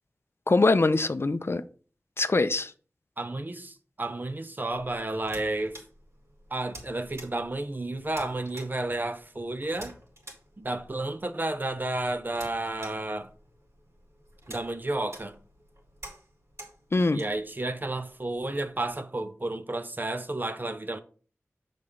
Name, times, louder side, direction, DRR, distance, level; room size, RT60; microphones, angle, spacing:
voice 1, 0.5-1.6 2.2-2.7 16.9-17.2, left 3 dB, 50° left, 0.5 m, -23 dB
voice 2, 3.2-5.8 6.5-9.9 10.6-13.3 14.5-15.4 17.1-21.0, right 2 dB, 40° right, 0.8 m, -32 dB
sound 1, 4.7-19.0, right 1 dB, 65° right, 2.7 m, -50 dB
6.9 x 4.2 x 4.9 m
wide cardioid pair, 60°, 5 cm